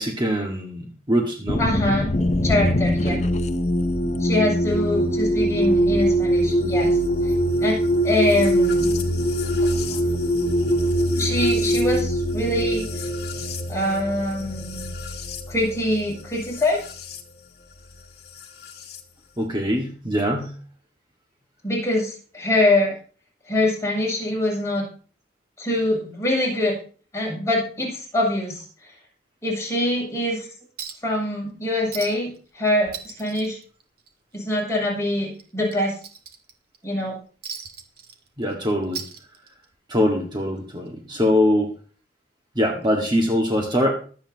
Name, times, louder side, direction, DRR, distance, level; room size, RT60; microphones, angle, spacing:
voice 1, 0.0-1.7 3.1-3.2 19.4-20.6 38.4-39.0 39.9-41.7 42.6-43.9, equal, 25° right, 1 dB, 1.7 m, -23 dB
sound 1, 1.5-3.5 3.9-4.4, left 2 dB, 40° left, 0.6 m, -26 dB
voice 2, 1.6-2.2 2.4-3.2 4.2-7.0 7.2-7.3 7.6-7.8 8.0-8.9 11.2-12.9 13.7-14.9 15.5-16.8 21.6-22.9 23.5-24.8 25.6-26.7 27.1-28.9 29.4-30.5 31.0-33.6 34.3-36.0 36.8-37.2, left 1 dB, 15° left, -3 dB, 7.8 m, -24 dB
sound 2, 2.1-17.2 18.4-19.0, equal, 60° left, 2.5 m, -23 dB
Chink clink, 30.8-31.2 31.5-31.6 31.9-32.4 32.7-34.4 34.7-34.9 35.3-36.8 37.4-38.5 38.8-39.8 40.9-41.0, right 6 dB, 55° right, 1.9 m, -38 dB
24.0 x 8.6 x 2.9 m, 0.40 s
head